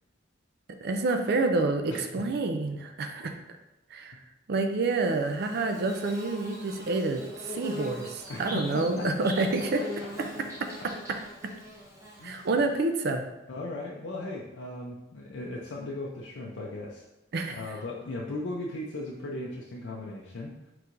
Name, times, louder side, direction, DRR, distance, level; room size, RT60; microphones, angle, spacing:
voice 1, 0.8-3.3 3.9-4.2 4.5-9.8 10.2-10.3 10.6-11.2 12.2-13.2 17.3-17.6, right 3 dB, 55° right, 6 dB, 0.4 m, -28 dB
Bird / Buzz, 5.1-12.8, left 1 dB, 15° right, 0.7 m, -42 dB
voice 2, 8.3-9.3 12.2-12.6 13.5-17.0 17.6-20.5, left 2 dB, 75° left, -3 dB, 0.5 m, -37 dB
4.5 x 3.9 x 2.6 m, 0.95 s
head